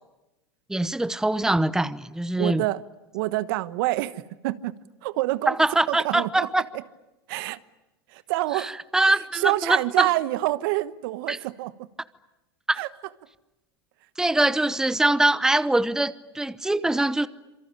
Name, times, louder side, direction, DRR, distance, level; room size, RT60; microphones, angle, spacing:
voice 1, 0.7-2.6 5.5-6.6 8.9-10.1 11.3-11.4 12.7-12.8 14.2-17.3, right 2 dB, 5° right, 0.9 m, -23 dB
voice 2, 2.4-2.8 3.1-5.6 5.9-6.6 7.3-7.6 8.1-8.8 9.3-11.9 12.8-12.9, right 17 dB, 60° right, 1.2 m, -27 dB
27.0 x 24.0 x 8.9 m
hypercardioid pair, 100°, 13 cm